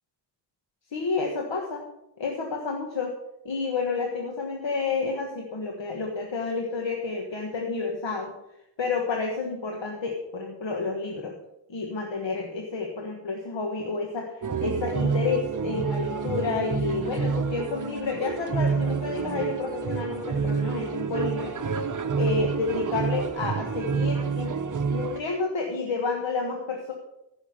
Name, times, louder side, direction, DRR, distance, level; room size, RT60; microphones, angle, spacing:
voice 1, 0.9-1.8 2.2-3.1 3.5-8.3 8.8-11.3 11.7-21.9 22.1-24.5 24.9-26.9, left 4 dB, 85° left, 1 dB, 1.6 m, -30 dB
sound 1, 14.4-25.2, right 5 dB, 45° right, 0.9 m, -28 dB
15.0 x 6.3 x 6.6 m, 0.86 s
wide cardioid pair, 75°, 43 cm